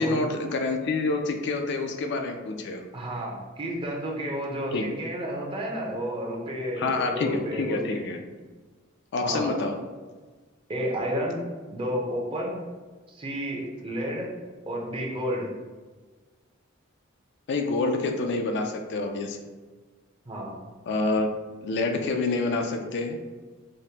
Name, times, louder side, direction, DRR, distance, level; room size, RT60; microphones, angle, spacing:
voice 1, 0.0-2.8 4.7-4.8 6.8-8.2 9.1-9.7 17.5-19.4 20.9-21.3 21.6-23.2, left 3 dB, 55° left, 5 dB, 0.4 m, -27 dB
voice 2, 2.9-8.0 9.2-9.5 10.7-11.4 11.7-12.6 13.1-14.3 14.7-15.5 20.3-20.6, equal, 25° right, -2 dB, 0.7 m, -31 dB
5.0 x 2.1 x 2.8 m, 1.3 s
head